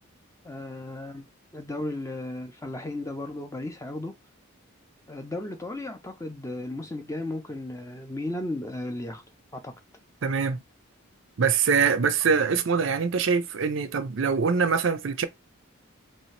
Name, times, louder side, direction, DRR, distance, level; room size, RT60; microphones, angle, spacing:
voice 1, 0.4-1.3 1.5-4.1 5.1-9.2 9.5-9.7, left 1 dB, 15° left, 0.4 m, -35 dB
voice 2, 10.2-10.6 11.4-15.3, right 5 dB, 60° right, 0.5 m, -24 dB
3.2 x 2.7 x 3.2 m
head